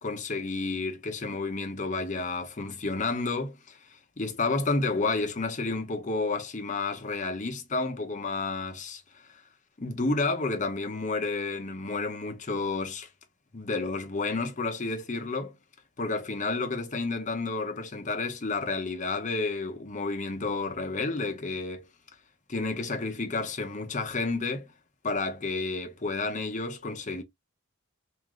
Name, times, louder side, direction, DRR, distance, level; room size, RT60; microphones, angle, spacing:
voice 1, 0.0-3.8 4.2-9.2 9.8-13.1 13.5-15.5 16.0-21.9 22.5-24.7 25.0-27.2, left 3 dB, 35° left, 0.9 m, -31 dB
3.7 x 2.7 x 3.2 m
head